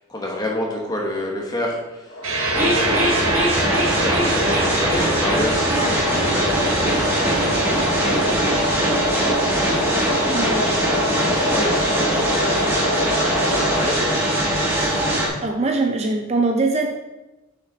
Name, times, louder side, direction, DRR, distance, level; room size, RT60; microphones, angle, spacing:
voice 1, 0.0-2.2 2.5-3.5 3.9-10.8 11.3-14.0, left 1 dB, 20° left, -1 dB, 1.2 m, -30 dB
sound 1, 2.1-14.5, left 1 dB, 60° left, 1.2 m, -27 dB
sound 2, 2.2-10.9, right 2 dB, 85° right, 1.5 m, -28 dB
sound 3, 2.5-15.3, right 1 dB, 10° right, 1.4 m, -21 dB
voice 2, 10.3-10.8 14.8-14.9 15.4-16.9, right 3 dB, 30° right, 3 dB, 0.5 m, -22 dB
6.6 x 5.9 x 3.9 m, 1.1 s
head